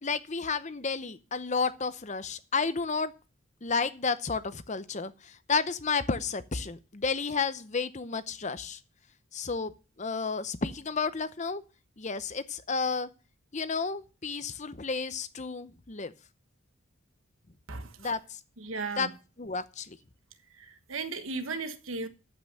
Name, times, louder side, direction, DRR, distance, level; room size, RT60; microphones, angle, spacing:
voice 1, 0.0-3.1 3.6-8.8 9.3-9.7 10.0-11.6 12.0-13.1 13.5-16.1 18.0-18.4 19.0-19.1 19.4-20.0, left 4 dB, 35° left, 0.7 m, -31 dB
voice 2, 17.7-18.1 18.6-19.1 20.6-22.1, right 4 dB, 70° right, 1.2 m, -36 dB
13.5 x 6.0 x 6.6 m
head